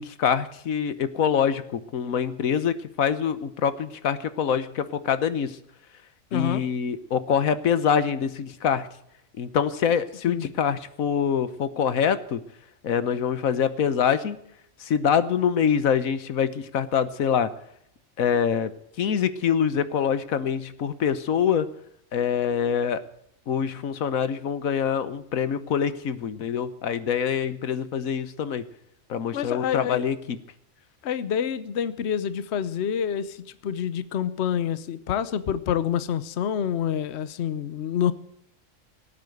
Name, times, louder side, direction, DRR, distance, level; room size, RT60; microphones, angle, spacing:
voice 1, 0.0-5.6 6.3-8.9 9.4-12.4 12.8-14.4 14.8-17.5 18.2-18.7 19.0-21.7 22.1-23.0 23.5-28.6 29.1-30.4, left 7 dB, 85° left, 13 dB, 1.4 m, -25 dB
voice 2, 6.3-6.6 10.3-10.5 29.3-30.0 31.0-38.1, left 9 dB, 60° left, 15 dB, 1.0 m, -27 dB
17.5 x 8.7 x 7.9 m, 0.74 s
omnidirectional pair, 1.4 m